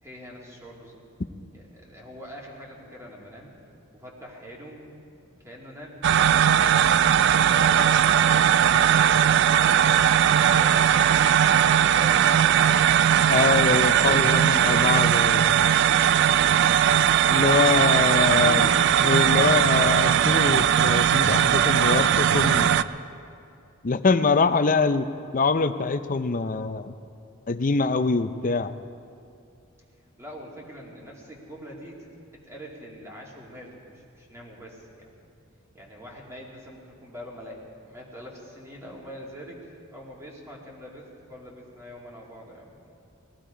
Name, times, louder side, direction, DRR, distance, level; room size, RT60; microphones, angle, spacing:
voice 1, 0.0-1.0 1.5-3.5 3.9-6.0 6.8-8.9 9.4-13.4 14.3-15.9 17.1-19.6 30.0-32.1 32.4-35.1 35.7-42.9, equal, 15° right, -3 dB, 2.5 m, -43 dB
sound 1, 6.0-22.8, right 9 dB, 55° right, 0.3 m, -19 dB
voice 2, 13.3-15.4 17.3-18.7 19.0-22.9 23.8-25.1 25.3-26.9 27.5-28.7, left 4 dB, 40° left, 10 dB, 0.6 m, -24 dB
19.0 x 15.0 x 5.0 m, 2.4 s
head